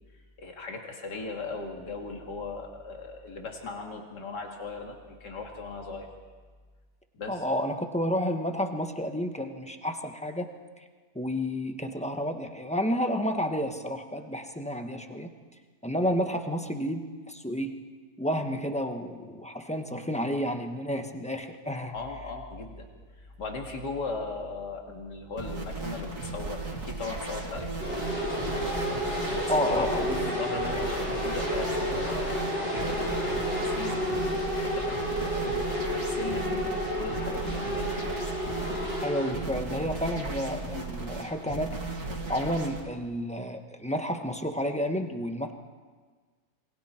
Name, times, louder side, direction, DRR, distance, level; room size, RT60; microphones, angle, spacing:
voice 1, 0.4-6.1 7.1-7.4 21.9-22.9 23.2-27.7 29.3-38.2, left 3 dB, 80° left, 2 dB, 2.7 m, -38 dB
voice 2, 7.3-10.5 10.8-10.9 11.1-15.3 15.8-17.8 18.2-21.9 29.5-30.2 39.0-42.0 42.3-45.5, equal, 5° left, 5 dB, 1.0 m, -31 dB
sound 1, 25.4-42.8, right 3 dB, 50° right, 3.1 m, -36 dB
sound 2, 27.8-39.3, equal, 35° left, 6.6 m, -31 dB
27.5 x 22.5 x 4.4 m, 1.5 s
omnidirectional pair, 1.8 m